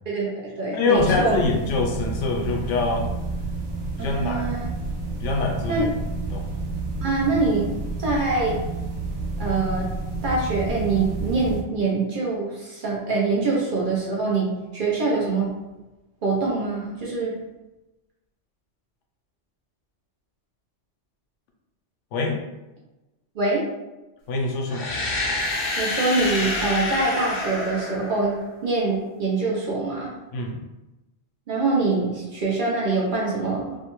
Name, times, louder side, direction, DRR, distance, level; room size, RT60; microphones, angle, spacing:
voice 1, 0.1-1.4 4.0-4.7 5.7-5.9 7.0-7.7 8.0-8.6 9.4-9.9 10.2-15.5 16.2-17.3 23.4-23.7 25.8-30.1 31.5-33.8, right 3 dB, 55° right, -4 dB, 0.6 m, -24 dB
voice 2, 0.7-3.1 4.0-4.4 5.2-5.9 6.3-6.5 22.1-22.4 24.3-24.9 30.3-30.6, left 3 dB, 80° left, 1 dB, 0.9 m, -24 dB
sound 1, 0.9-11.6, right 3 dB, 75° right, 1.0 m, -30 dB
sound 2, 24.7-28.6, left 2 dB, 55° left, 0.5 m, -28 dB
2.6 x 2.2 x 2.9 m, 1.0 s
omnidirectional pair, 1.2 m